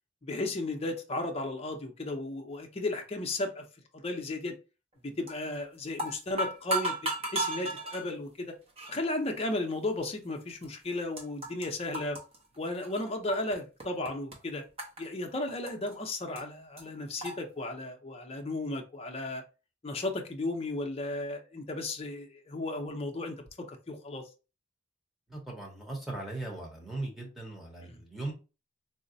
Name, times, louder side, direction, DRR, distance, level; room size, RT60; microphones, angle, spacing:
voice 1, 0.2-3.6 3.9-4.5 5.0-8.5 8.9-12.2 12.6-14.6 15.0-19.4 19.8-23.4 23.7-24.2, left 2 dB, 30° left, 0.5 m, -34 dB
sound 1, 5.3-5.6 5.9-8.0 8.8-9.0 9.7-9.8 10.6-10.7 10.9-11.7 11.9-13.5 13.8-14.3 14.8-15.9 16.4-16.5 16.8-16.9 17.2-17.3, right 2 dB, 30° right, 0.8 m, -34 dB
voice 2, 25.3-28.3, right 2 dB, ahead, 0.9 m, -38 dB
3.9 x 2.1 x 2.5 m
head